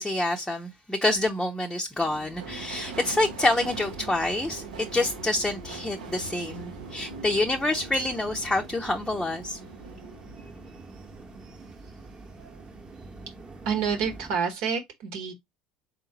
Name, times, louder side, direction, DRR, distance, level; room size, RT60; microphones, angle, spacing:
voice 1, 0.0-9.6, left 2 dB, 10° left, 0.7 m, -27 dB
sound 1, 2.0-14.4, right 3 dB, 25° right, 1.1 m, -46 dB
Subway metro underground, 2.4-13.1 13.5-14.2 14.4-14.6, right 4 dB, 85° right, 0.8 m, -43 dB
voice 2, 13.6-15.3, right 6 dB, 65° right, 1.1 m, -28 dB
3.8 x 3.7 x 2.8 m
hypercardioid pair, 70°, 4 cm